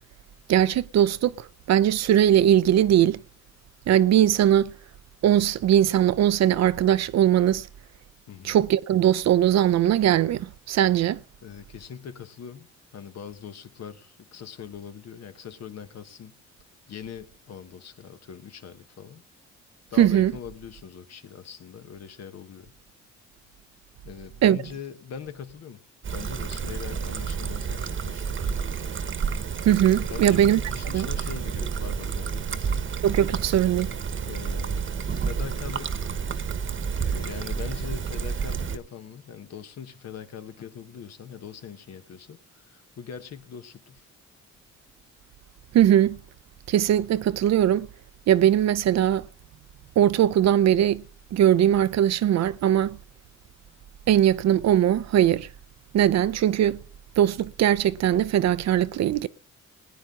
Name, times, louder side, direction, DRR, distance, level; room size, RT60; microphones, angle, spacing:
voice 1, 0.5-3.2 3.9-4.7 5.2-7.7 8.4-11.2 20.0-20.3 24.4-24.6 29.6-30.6 30.9-31.1 33.0-33.9 45.7-46.2 46.7-47.9 48.3-49.3 50.0-51.0 51.3-53.0 54.1-55.5 55.9-56.8 57.2-59.3, right 11 dB, 60° right, 0.6 m, -20 dB
voice 2, 11.4-16.4 16.9-19.2 19.9-22.7 24.0-25.8 26.1-28.4 30.1-32.9 34.3-36.1 37.0-44.1, left 8 dB, 60° left, 1.2 m, -41 dB
Trickle dribble, 26.0-38.8, right 6 dB, 40° right, 1.1 m, -30 dB
19.5 x 9.4 x 3.6 m
cardioid pair, 90°, 30 cm